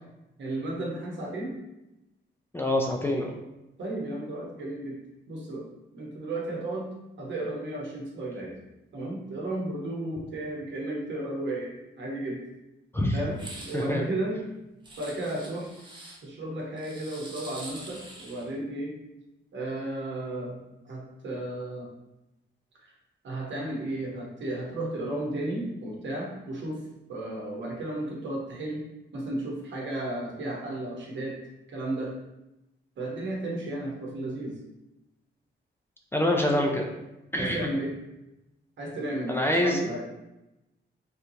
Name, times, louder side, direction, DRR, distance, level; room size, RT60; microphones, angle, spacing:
voice 1, 0.4-1.5 3.8-5.0 5.3-5.6 5.9-8.5 8.9-12.4 13.1-14.4 15.0-15.7 16.2-18.9 19.5-20.6 20.8-21.9 22.8-22.9 23.2-26.8 27.1-28.8 29.1-31.3 31.7-32.1 33.0-34.5 37.4-38.0 38.8-40.0, right 1 dB, 75° right, -2 dB, 1.0 m, -33 dB
voice 2, 2.5-3.3 12.9-13.2 13.7-14.0 36.1-36.9 37.3-37.7 39.3-39.9, left 1 dB, 10° left, 0 dB, 0.3 m, -25 dB
sound 1, 13.3-13.9 14.8-16.2 16.8-18.5, right 1 dB, 25° right, 0.6 m, -45 dB
3.5 x 2.7 x 2.7 m, 0.96 s
wide cardioid pair, 140°, 19 cm